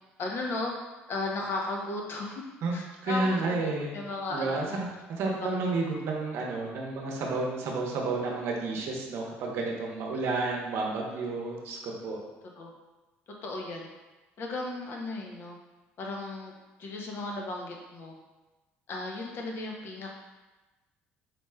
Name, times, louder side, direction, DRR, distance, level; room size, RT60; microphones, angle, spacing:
voice 1, 0.2-0.7 1.1-2.4 2.7-3.6 3.9-4.8 5.4-5.6 12.6-12.7 13.4-13.9 14.4-15.6 16.0-16.5 16.8-18.1 18.9-20.2, left 2 dB, 55° left, 0 dB, 0.7 m, -35 dB
voice 2, 2.6-3.9 4.3-12.2, right 3 dB, 70° right, -1 dB, 0.7 m, -31 dB
4.1 x 3.1 x 2.3 m, 1.1 s
cardioid pair, 100°, 5 cm